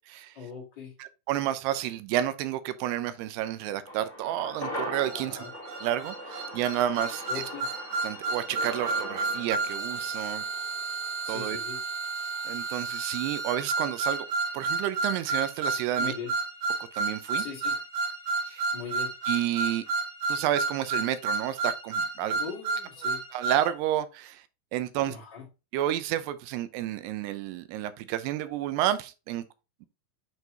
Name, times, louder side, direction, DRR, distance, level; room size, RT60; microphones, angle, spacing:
voice 1, 0.3-0.9 5.1-5.5 7.3-7.7 11.2-11.8 16.0-16.3 17.4-17.8 18.7-19.1 22.4-23.2 25.0-25.5, left 6 dB, 75° left, 0.9 m, -40 dB
voice 2, 1.0-5.5 5.8-7.2 8.0-10.4 11.3-11.6 12.5-14.3 14.5-16.1 16.9-17.5 18.5-18.7 19.3-19.8 20.3-22.4 23.3-24.4 24.7-25.2 25.7-29.4, right 12 dB, 80° right, 2.5 m, -30 dB
sound 1, 3.9-12.4 12.7-12.8, equal, 20° left, 1.4 m, -41 dB
sound 2, 5.0-23.7, right 3 dB, 65° right, 2.4 m, -31 dB
7.9 x 4.6 x 2.7 m
omnidirectional pair, 5.0 m